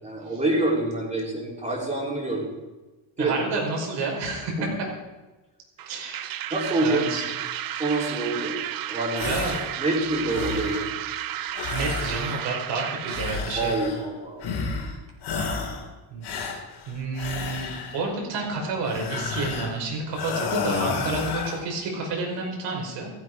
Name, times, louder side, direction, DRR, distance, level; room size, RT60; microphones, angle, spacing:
voice 1, 0.0-2.4 3.2-3.3 4.6-4.7 6.5-7.2 7.8-8.6 8.9-9.3 9.8-10.9 13.6-14.7, right 2 dB, 15° right, -3 dB, 4.9 m, -26 dB
voice 2, 3.2-4.5 5.9-6.4 6.8-7.2 9.2-9.6 11.7-13.7 15.3-15.8 16.1-16.2 16.9-23.1, right 3 dB, 70° right, 1 dB, 5.6 m, -30 dB
sound 1, 5.8-13.4, right 12 dB, 50° right, 0.8 m, -33 dB
sound 2, 9.1-9.7 10.1-10.9 11.5-12.6 13.1-14.1 14.4-14.9 15.2-15.9 16.2-18.1 18.8-19.8 20.1-21.6, left 5 dB, 60° left, 3.4 m, -31 dB
16.5 x 14.5 x 4.8 m, 1.1 s
cardioid pair, 145°, 44 cm